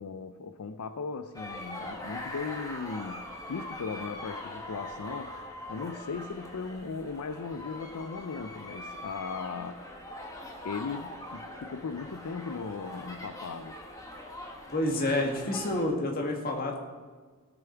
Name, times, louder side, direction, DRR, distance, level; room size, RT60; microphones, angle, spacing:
voice 1, 0.0-9.8 10.6-13.8, left 5 dB, 80° left, 9 dB, 0.5 m, -38 dB
sound 1, 1.3-15.8, left 1 dB, 15° left, 1.6 m, -42 dB
voice 2, 14.7-16.8, left 1 dB, 40° left, 1 dB, 2.0 m, -29 dB
17.0 x 7.0 x 4.6 m, 1.5 s
head